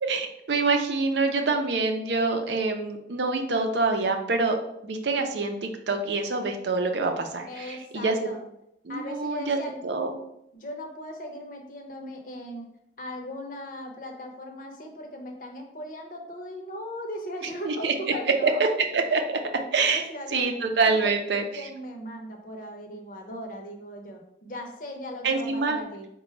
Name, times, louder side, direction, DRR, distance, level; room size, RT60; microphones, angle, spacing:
voice 1, 0.0-4.6 4.8-8.3 8.8-9.6 9.8-10.1 17.4-17.9 18.4-18.5 18.9-19.4 19.7-20.0 20.3-21.4 25.2-25.8, right 4 dB, 80° right, 5 dB, 0.5 m, -26 dB
voice 2, 7.5-8.5 8.9-9.8 10.5-12.7 13.0-18.6 19.9-20.6 20.8-21.1 21.5-26.1, equal, 50° left, 2 dB, 0.7 m, -38 dB
4.0 x 2.2 x 4.4 m, 0.78 s
head